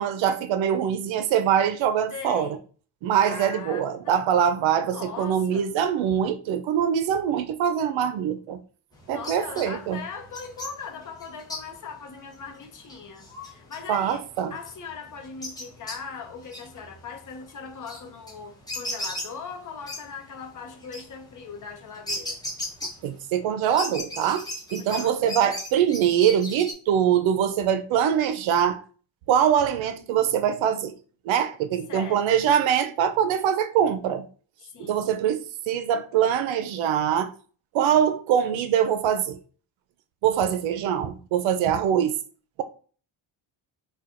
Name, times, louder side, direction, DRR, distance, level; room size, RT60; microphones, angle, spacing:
voice 1, 0.0-2.6 3.0-8.6 9.1-10.0 13.9-14.5 23.0-24.5 24.7-28.8 29.3-30.9 31.2-34.3 34.8-37.3 37.7-39.4 40.2-42.2, right 9 dB, 70° right, 0.6 m, -23 dB
voice 2, 2.1-2.6 3.2-4.2 4.8-5.7 9.1-22.4 24.8-25.6 31.9-32.3 34.7-35.2, left 6 dB, 40° left, 0.7 m, -40 dB
sound 1, 8.9-23.4 23.7-26.7, left 1 dB, 10° left, 0.7 m, -38 dB
4.3 x 2.3 x 2.5 m
cardioid pair, 120°, 48 cm